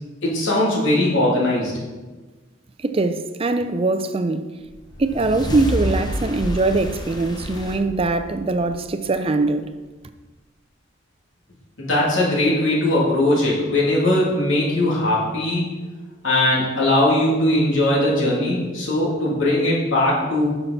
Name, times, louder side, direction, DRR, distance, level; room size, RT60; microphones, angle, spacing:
voice 1, 0.2-1.7 11.8-15.6 16.2-20.5, left 1 dB, 75° left, 2.8 m, -19 dB
voice 2, 2.8-4.6 5.0-9.8, right 3 dB, 30° right, 0.5 m, -22 dB
sound 1, 4.7-9.3, equal, 20° left, 0.8 m, -29 dB
11.0 x 5.8 x 4.1 m
head